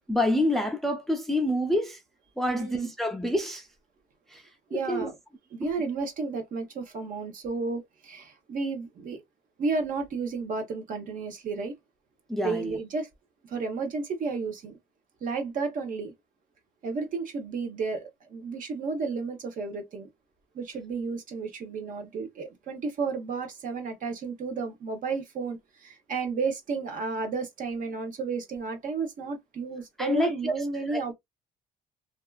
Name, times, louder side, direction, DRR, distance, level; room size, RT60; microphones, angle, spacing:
voice 1, 0.1-2.0 2.4-3.7 4.3-5.1 12.3-12.8 30.0-31.1, left 1 dB, ahead, 0.5 m, -28 dB
voice 2, 2.5-2.9 4.7-5.1 5.5-9.2 9.6-11.8 12.4-13.1 13.5-14.8 15.2-16.1 16.8-20.1 20.5-31.1, right 4 dB, 50° right, 1.0 m, -32 dB
2.7 x 2.4 x 2.3 m
cardioid pair, 110°, 17 cm